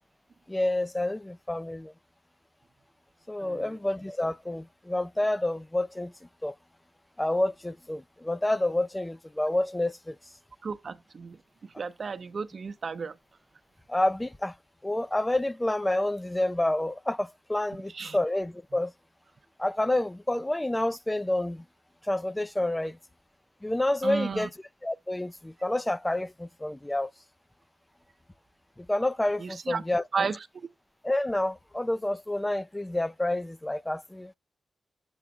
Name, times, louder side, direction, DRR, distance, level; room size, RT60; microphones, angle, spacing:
voice 1, 0.5-1.9 3.3-6.1 6.4-6.5 7.2-10.2 13.9-14.6 14.8-18.9 19.6-21.7 22.0-23.0 23.6-24.5 24.8-27.1 28.8-30.0 31.0-34.3, left 1 dB, 15° left, 0.4 m, -28 dB
voice 2, 3.4-3.7 10.6-13.2 17.9-18.2 24.0-24.5 29.4-29.8 30.1-30.7, right 5 dB, 60° right, 0.7 m, -34 dB
7.1 x 3.3 x 4.9 m
supercardioid pair, 45°, 0 cm